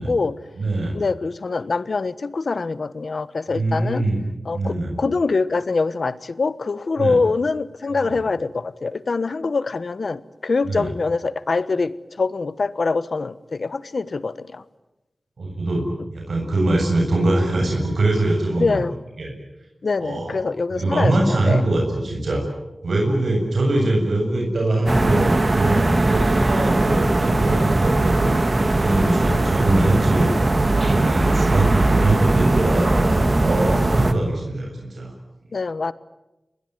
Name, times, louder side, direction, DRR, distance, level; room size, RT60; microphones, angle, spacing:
voice 1, 0.0-0.4 0.9-4.0 4.4-14.6 18.6-19.0 19.8-21.6 35.5-35.9, left 4 dB, 70° left, 16 dB, 1.1 m, -24 dB
voice 2, 0.6-1.0 3.5-4.2 4.5-4.9 7.0-7.2 10.6-10.9 15.4-18.8 19.2-19.3 20.0-20.4 20.7-22.4 22.8-28.4 28.8-35.1, right 2 dB, 80° right, 0 dB, 7.6 m, -22 dB
sound 1, 24.9-34.1, right 2 dB, 45° right, 2.2 m, -19 dB
29.0 x 21.0 x 9.6 m, 0.99 s
cardioid pair, 50°, 0 cm